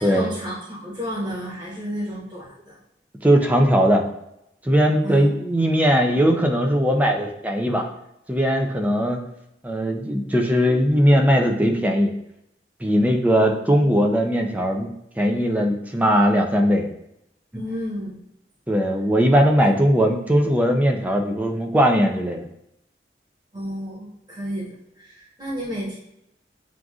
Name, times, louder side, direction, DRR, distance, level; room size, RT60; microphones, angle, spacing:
voice 1, 0.0-2.8 5.0-5.3 17.5-18.2 23.5-24.7 25.0-26.0, equal, 25° right, -7 dB, 1.4 m, -31 dB
voice 2, 3.2-4.1 4.6-7.9 8.3-9.2 9.6-12.1 12.8-14.9 15.2-16.9 18.7-22.4, equal, 10° right, 2 dB, 0.5 m, -19 dB
7.4 x 2.5 x 2.4 m, 0.81 s
head